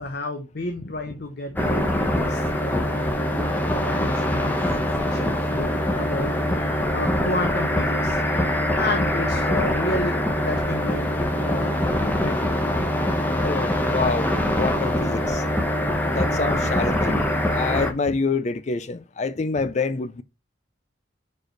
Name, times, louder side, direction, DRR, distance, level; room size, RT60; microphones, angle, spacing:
voice 1, 0.0-3.0 3.7-4.6 5.0-6.3 6.8-8.5 8.8-10.2 10.4-11.1 11.4-11.9 12.2-12.5 19.6-19.7, left 2 dB, 55° left, 0.8 m, -31 dB
sound 1, 1.6-17.9, left 1 dB, 10° left, 0.8 m, -23 dB
voice 2, 13.4-14.3 14.6-15.4 16.1-17.2 17.5-20.2, left 4 dB, 35° left, 0.4 m, -26 dB
4.8 x 4.7 x 4.4 m
head